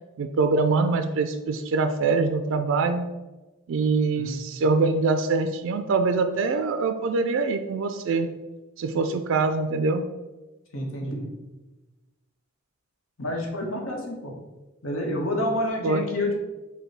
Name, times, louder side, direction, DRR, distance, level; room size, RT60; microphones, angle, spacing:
voice 1, 0.2-3.1 3.7-8.3 8.8-10.0 15.8-16.0, right 4 dB, 65° right, 7 dB, 0.3 m, -24 dB
voice 2, 10.7-11.3 13.2-14.3 14.8-16.3, left 1 dB, 85° left, 0 dB, 1.1 m, -28 dB
5.2 x 2.2 x 4.6 m, 1.1 s
head